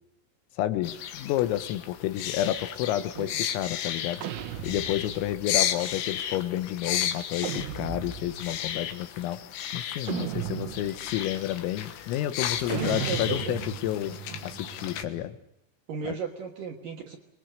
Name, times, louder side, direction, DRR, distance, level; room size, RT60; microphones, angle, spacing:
voice 1, 0.6-4.2 4.6-9.4 9.7-15.4 16.0-16.2, left 13 dB, 90° left, 11 dB, 3.8 m, -30 dB
sound 1, 0.8-15.0, left 10 dB, 70° left, 3.3 m, -34 dB
sound 2, 4.2-5.5 7.4-8.5 10.1-11.1 12.7-15.4, right 11 dB, 85° right, 4.0 m, -36 dB
voice 2, 12.7-13.6 14.3-14.4 15.9-17.2, right 6 dB, 65° right, 2 dB, 2.3 m, -35 dB
26.5 x 21.5 x 6.6 m, 0.82 s
omnidirectional pair, 5.9 m